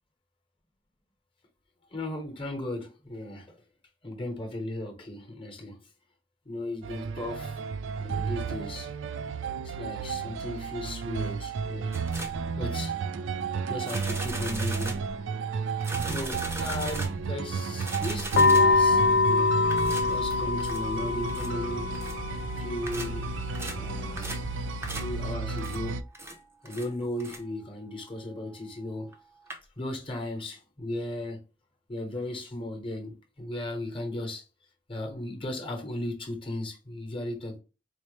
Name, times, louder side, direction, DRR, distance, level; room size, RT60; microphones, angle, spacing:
voice 1, 1.9-3.5 4.0-5.8 6.5-7.6 8.0-8.9 9.6-11.9 12.5-12.9 13.7-15.0 16.1-19.5 20.1-21.9 22.6-23.3 23.8-24.3 24.9-26.0 26.6-29.1 29.8-31.4 31.9-34.4 34.9-37.6, left 1 dB, 30° left, 0.9 m, -36 dB
sound 1, 6.8-26.0, right 5 dB, 90° right, 0.4 m, -33 dB
sound 2, 11.9-12.5 13.8-15.2 15.8-17.3 17.8-18.8 19.7-20.9 21.3-21.5 21.9-22.2 22.9-23.2 23.5-23.8 24.2-24.5 24.8-25.2 25.6-25.8 26.1-26.4 26.6-26.9 27.2-27.4 29.1-29.2 29.5-29.6, right 1 dB, 15° right, 0.6 m, -38 dB
sound 3, 18.3-25.3, left 4 dB, 70° left, 0.3 m, -26 dB
4.3 x 2.1 x 3.1 m
head